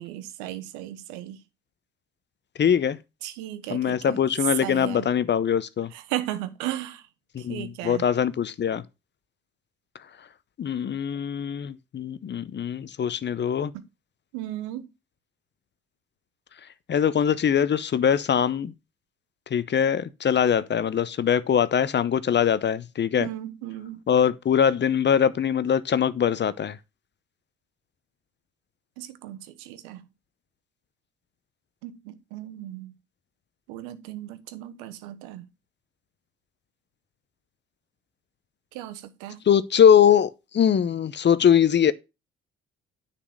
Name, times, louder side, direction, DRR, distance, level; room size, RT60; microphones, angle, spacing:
voice 1, 0.0-1.4 3.2-4.2 4.6-5.1 5.9-7.1 7.4-8.1 14.3-14.9 23.2-24.0 29.0-30.0 31.8-32.9 33.7-35.5 38.7-39.4, right 14 dB, 75° right, 1.1 m, -36 dB
voice 2, 2.6-3.0 3.7-5.9 7.3-8.8 10.6-13.7 16.9-18.7 19.5-23.3 24.1-26.8 39.4-41.9, left 8 dB, 35° left, 0.8 m, -22 dB
9.9 x 4.3 x 6.4 m
hypercardioid pair, 55°, 30 cm